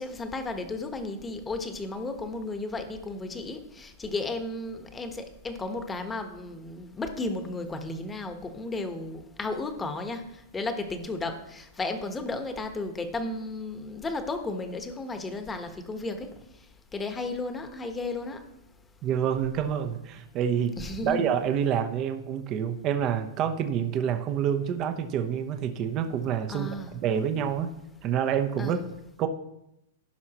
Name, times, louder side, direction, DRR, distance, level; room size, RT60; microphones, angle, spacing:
voice 1, 0.0-16.3 16.9-18.4 20.8-21.2 26.5-27.0 28.6-28.9, left 2 dB, 15° left, 7 dB, 1.2 m, -34 dB
voice 2, 19.0-20.8 21.0-26.7 27.0-27.7 28.0-28.8 29.2-29.3, right 8 dB, 35° right, 7 dB, 0.8 m, -27 dB
15.5 x 5.7 x 3.0 m, 0.86 s
hypercardioid pair, 120°, 0 cm